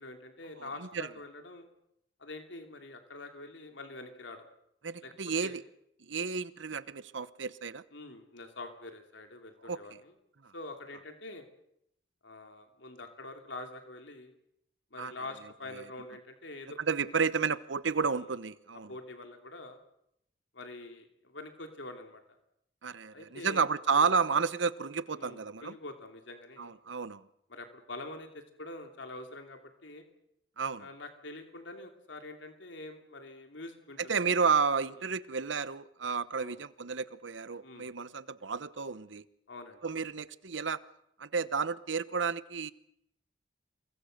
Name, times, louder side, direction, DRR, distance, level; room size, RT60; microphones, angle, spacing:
voice 1, 0.0-1.7 2.2-4.5 5.0-5.1 5.4-5.5 7.9-10.1 10.5-11.5 12.2-14.3 14.9-17.1 18.9-19.8 20.5-22.2 23.1-24.1 25.1-26.7 27.5-30.0 30.8-34.2 36.4-36.6 37.6-37.9 39.5-39.8, left 2 dB, 85° left, 5 dB, 2.9 m, -45 dB
voice 2, 0.6-1.1 4.8-5.6 6.1-7.8 9.6-9.8 10.4-10.5 15.0-15.1 15.7-15.9 16.8-19.0 22.8-25.8 26.6-27.2 30.6-30.9 34.0-39.2 39.8-40.8 41.2-42.7, right 5 dB, 90° right, 16 dB, 1.0 m, -31 dB
28.0 x 22.5 x 6.6 m, 0.79 s
head